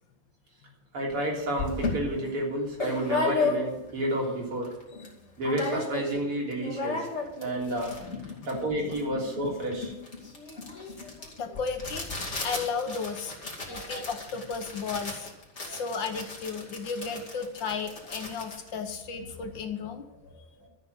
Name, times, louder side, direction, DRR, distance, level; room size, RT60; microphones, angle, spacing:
voice 1, 0.9-4.7 5.4-7.0 7.4-8.0 8.5-9.9 13.7-14.1 15.6-15.8, right 1 dB, 80° right, -2 dB, 4.4 m, -30 dB
sound 1, 1.1-1.2 1.6-4.0 4.4-4.5 4.6-5.1 5.4-6.2 6.5-19.6, left 3 dB, 30° left, 2.7 m, -34 dB
voice 2, 8.0-8.5 8.9-9.0 11.4-13.3 13.7-15.3 15.7-20.0, left 5 dB, 60° left, 6 dB, 1.8 m, -34 dB
13.0 x 7.2 x 8.2 m, 0.96 s
omnidirectional pair, 2.4 m